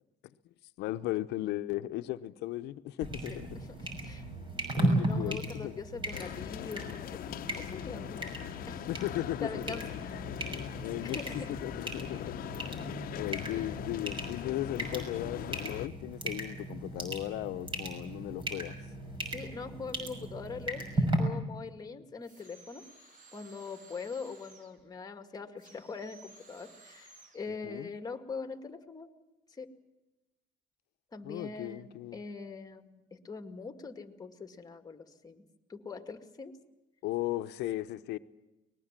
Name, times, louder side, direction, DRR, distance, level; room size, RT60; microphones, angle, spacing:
voice 1, 0.8-3.5 4.3-4.4 4.7-5.7 8.9-9.8 10.8-11.2 11.6-12.3 12.7-12.9 13.2-18.8 27.6-27.9 31.2-32.2 37.0-38.2, left 15 dB, 85° left, 0.8 m, -36 dB
sound 1, 3.0-21.2, right 1 dB, 30° right, 5.8 m, -36 dB
voice 2, 3.3-4.2 4.9-8.2 8.7-8.9 9.4-10.2 11.0-11.5 19.3-22.8 23.3-29.1 29.6-29.7 31.1-35.4 35.7-36.5, left 4 dB, 20° left, 2.1 m, -43 dB
sound 2, 6.1-15.9, left 11 dB, 60° left, 0.9 m, -41 dB
sound 3, 22.2-24.8 25.6-27.5, right 3 dB, 50° right, 5.4 m, -57 dB
24.0 x 20.0 x 7.5 m
cardioid pair, 110°, 17 cm